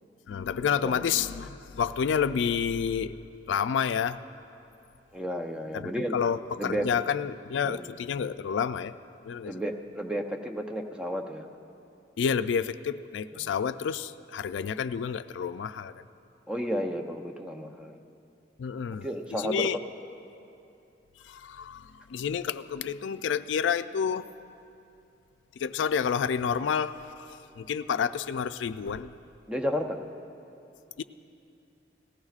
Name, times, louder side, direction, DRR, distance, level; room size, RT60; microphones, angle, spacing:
voice 1, 0.3-3.2 3.5-4.2 5.7-8.9 9.2-9.6 12.2-15.9 18.6-19.1 19.4-19.8 21.2-24.3 25.6-29.1 31.0-31.1, left 7 dB, 85° left, 12 dB, 0.3 m, -29 dB
voice 2, 0.8-1.1 5.1-6.2 6.6-6.9 7.6-7.9 9.5-11.5 13.3-13.5 16.5-18.0 19.0-19.7 29.5-30.0, equal, 5° right, 3 dB, 0.6 m, -32 dB
19.0 x 15.5 x 2.4 m, 2.7 s
head